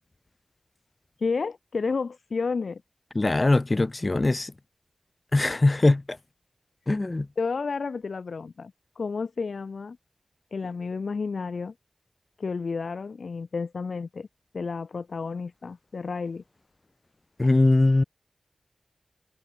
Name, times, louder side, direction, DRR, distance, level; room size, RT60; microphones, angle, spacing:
voice 1, 1.2-2.8 7.4-10.0 10.5-11.7 12.4-14.3 14.5-16.4, left 4 dB, 80° left, 1.9 m, -31 dB
voice 2, 3.1-4.5 5.3-6.2 6.9-7.3 17.4-18.0, left 2 dB, 40° left, 6.3 m, -21 dB
cardioid pair, 45°, 0 cm